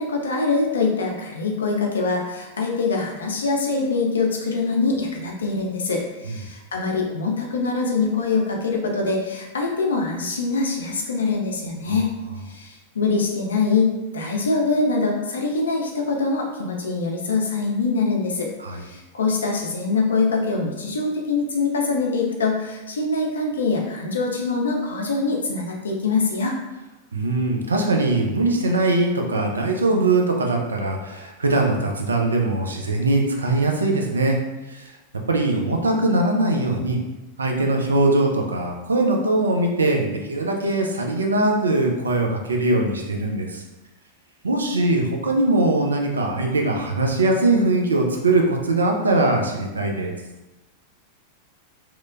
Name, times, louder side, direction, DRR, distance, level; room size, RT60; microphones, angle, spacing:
voice 1, 0.0-12.1 12.5-26.6, left 3 dB, 70° left, 1 dB, 0.4 m, -24 dB
voice 2, 27.1-34.4 34.7-34.9 35.3-37.0 37.4-43.6 44.4-50.2, right 2 dB, 75° right, 1 dB, 0.4 m, -21 dB
2.9 x 2.0 x 2.4 m, 1.0 s
figure-of-eight pair, 90°, 0 cm